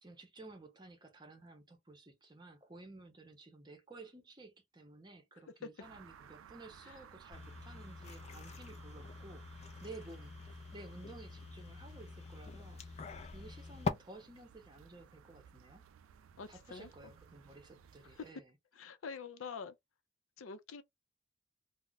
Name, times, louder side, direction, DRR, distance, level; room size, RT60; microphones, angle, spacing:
voice 1, 0.0-15.9 16.5-18.5, right 2 dB, 20° right, 0.6 m, -54 dB
sound 1, 5.8-18.3, right 7 dB, 90° right, 0.3 m, -59 dB
sound 2, 7.3-13.9, left 4 dB, 35° left, 0.4 m, -44 dB
voice 2, 16.4-16.9 18.2-18.3 18.8-19.7 20.4-20.8, left 5 dB, 90° left, 0.5 m, -45 dB
2.3 x 2.1 x 3.8 m
head